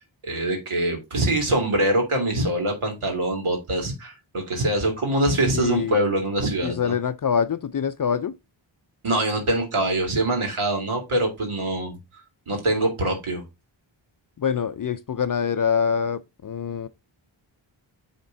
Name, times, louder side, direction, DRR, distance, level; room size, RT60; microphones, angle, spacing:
voice 1, 0.2-6.9 9.0-12.0 12.5-13.4, right 1 dB, 85° right, 2.4 m, -24 dB
voice 2, 5.5-6.0 6.6-8.3 14.4-16.9, left 7 dB, 45° left, 0.4 m, -25 dB
9.7 x 3.6 x 3.8 m
wide cardioid pair, 105°, 49 cm